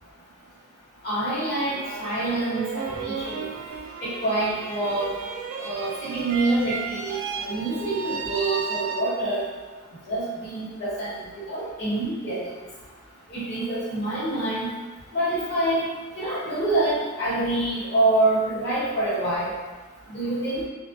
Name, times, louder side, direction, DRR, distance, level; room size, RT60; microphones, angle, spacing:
voice 1, 1.0-3.5 4.0-5.1 5.6-9.4 10.1-11.2 11.5-12.4 13.3-14.7 15.1-15.8 16.1-19.5 20.1-20.6, right 2 dB, 55° left, -11 dB, 1.1 m, -26 dB
sound 1, 1.3-9.5, right 5 dB, 85° right, 0.3 m, -34 dB
2.4 x 2.2 x 2.5 m, 1.4 s
head